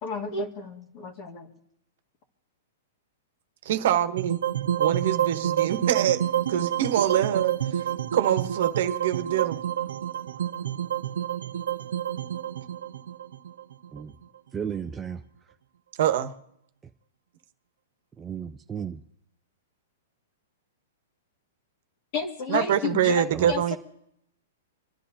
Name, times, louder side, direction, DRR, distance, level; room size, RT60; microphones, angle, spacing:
voice 1, 0.0-1.5 22.1-23.8, left 5 dB, 40° left, 2.1 m, -32 dB
voice 2, 3.6-4.4 4.8-6.2 6.5-7.8 8.1-9.6 16.0-16.3 22.5-23.7, right 10 dB, 65° right, 1.2 m, -24 dB
sound 1, 4.2-14.4, right 10 dB, 80° right, 0.4 m, -29 dB
voice 3, 14.5-15.2 18.2-19.0 23.3-23.7, right 7 dB, 15° right, 0.5 m, -34 dB
28.0 x 11.5 x 2.8 m
hypercardioid pair, 145°, 0 cm